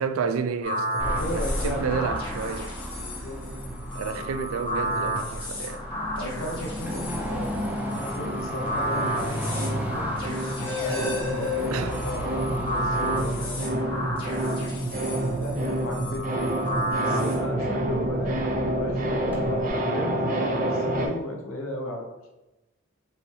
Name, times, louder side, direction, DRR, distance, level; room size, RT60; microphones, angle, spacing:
voice 1, 0.0-2.7 3.9-5.8 11.7-12.0, right 6 dB, 90° right, 0.4 m, -30 dB
sound 1, 0.6-17.3, equal, 25° left, 1.2 m, -32 dB
voice 2, 1.0-1.9 2.9-3.4 6.2-10.0 10.6-14.5 15.4-16.7 17.0-22.1, left 1 dB, 80° left, 0.7 m, -35 dB
Car passing by / Traffic noise roadway noise / Engine, 1.0-19.7, equal, 10° right, 0.8 m, -35 dB
sound 2, 3.4-5.9 6.2-21.1, right 1 dB, 40° right, 0.6 m, -30 dB
5.4 x 3.2 x 2.7 m
head